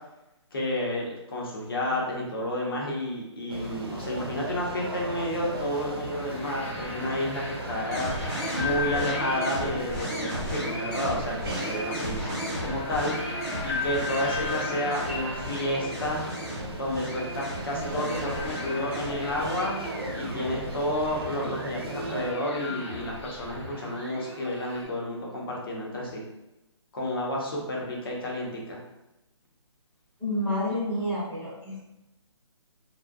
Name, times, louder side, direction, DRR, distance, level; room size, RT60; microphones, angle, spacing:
voice 1, 0.5-8.1 8.5-13.1 13.6-16.2 16.7-19.8 20.1-26.2 26.9-28.8, left 1 dB, 50° left, -3 dB, 0.7 m, -31 dB
sound 1, 3.5-22.3, right 1 dB, 50° right, 0.4 m, -37 dB
sound 2, 5.5-24.8, left 4 dB, 75° left, 0.9 m, -39 dB
sound 3, 7.9-24.9, equal, 25° left, 0.8 m, -36 dB
voice 2, 30.2-31.8, left 1 dB, 5° left, -14 dB, 0.5 m, -29 dB
2.6 x 2.1 x 2.2 m, 0.97 s
hypercardioid pair, 170°, 16 cm